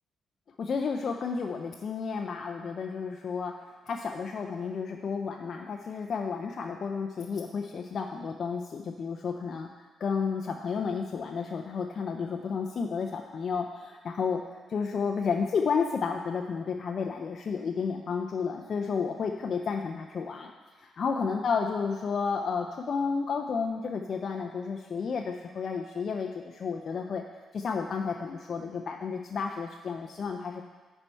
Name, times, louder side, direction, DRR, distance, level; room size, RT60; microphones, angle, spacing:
voice 1, 0.6-14.4 14.7-20.5 20.8-27.2 27.5-30.6, left 5 dB, 45° left, 2 dB, 0.4 m, -32 dB
10.0 x 4.4 x 4.5 m, 1.3 s
cardioid pair, 145°, 0 cm